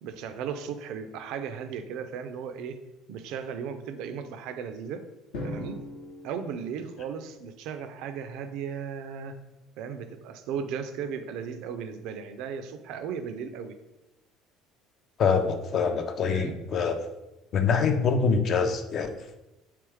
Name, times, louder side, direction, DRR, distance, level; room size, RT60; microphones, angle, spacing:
voice 1, 0.0-2.8 3.1-5.0 5.4-5.8 6.2-9.3 9.8-13.8 16.2-16.6, right 7 dB, 60° right, 8 dB, 0.3 m, -36 dB
Drum, 5.3-7.5, left 1 dB, 65° left, 0.8 m, -39 dB
voice 2, 15.2-17.0 17.5-19.1, left 5 dB, 45° left, 7 dB, 0.4 m, -25 dB
3.3 x 3.0 x 3.2 m, 0.98 s
figure-of-eight pair, 60°, 0 cm